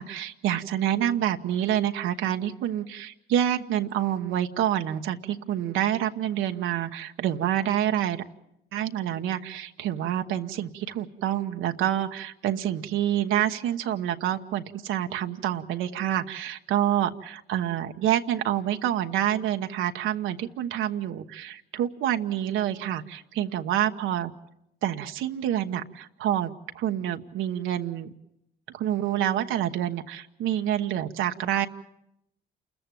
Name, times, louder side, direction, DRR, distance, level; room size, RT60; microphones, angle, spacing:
voice 1, 0.0-8.2 8.7-24.3 24.8-28.1 28.7-31.7, right 11 dB, 85° right, 5 dB, 1.0 m, -27 dB
28.0 x 14.5 x 9.1 m, 0.85 s
cardioid pair, 90°, 20 cm